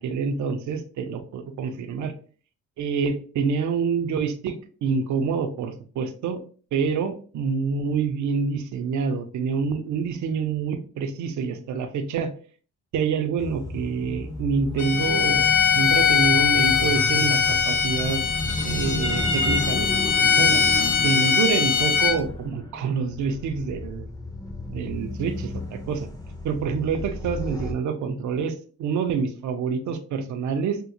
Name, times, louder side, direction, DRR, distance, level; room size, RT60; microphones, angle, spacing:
voice 1, 0.0-2.1 2.8-6.4 6.7-12.3 12.9-15.5 15.7-18.2 18.6-24.0 24.7-26.1 26.4-30.8, right 5 dB, 70° right, 7 dB, 0.6 m, -27 dB
sound 1, 13.4-27.7, left 2 dB, 10° left, 0.6 m, -33 dB
Bowed string instrument, 14.8-22.2, left 6 dB, 75° left, 0.8 m, -21 dB
3.6 x 2.0 x 2.9 m, 0.41 s
cardioid pair, 90°, 30 cm